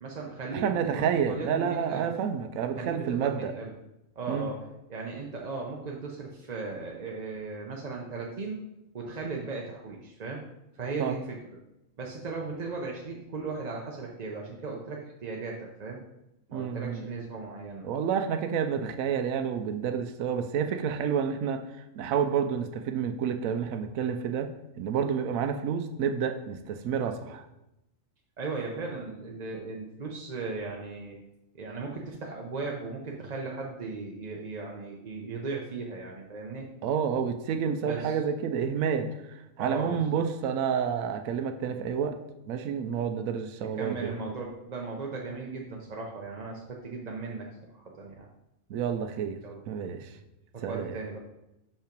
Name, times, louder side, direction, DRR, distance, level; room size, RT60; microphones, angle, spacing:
voice 1, 0.0-2.1 2.8-3.7 4.2-8.6 8.9-10.4 10.7-11.4 12.0-16.0 16.5-17.9 28.4-31.2 31.5-36.7 37.8-38.2 39.6-40.2 43.7-48.3 49.4-49.6 50.5-51.2, right 4 dB, 40° right, -1 dB, 0.7 m, -37 dB
voice 2, 0.5-3.5 4.3-4.5 11.0-11.2 16.5-17.0 17.8-21.6 22.0-24.5 24.8-27.4 36.8-42.2 42.5-44.1 48.7-49.4 49.7-50.1 50.6-50.9, right 7 dB, 85° right, 8 dB, 1.0 m, -29 dB
5.7 x 5.5 x 5.1 m, 0.91 s
omnidirectional pair, 1.4 m